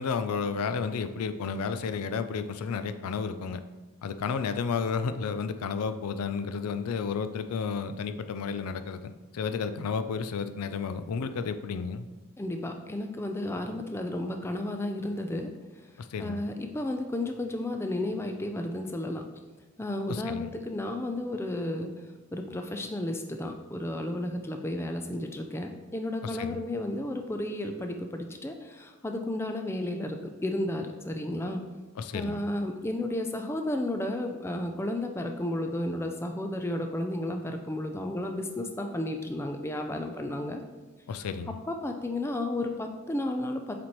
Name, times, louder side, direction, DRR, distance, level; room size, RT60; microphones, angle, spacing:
voice 1, 0.0-3.6 4.0-12.1 16.0-16.4 20.1-20.5 26.2-26.6 32.0-32.4 41.1-41.5, left 5 dB, 90° left, 11 dB, 0.4 m, -32 dB
voice 2, 12.4-15.5 16.2-19.2 19.8-21.9 22.3-31.6 32.1-40.6 41.7-43.7, left 1 dB, 10° left, 4 dB, 0.3 m, -32 dB
7.4 x 4.2 x 3.0 m, 1.2 s
head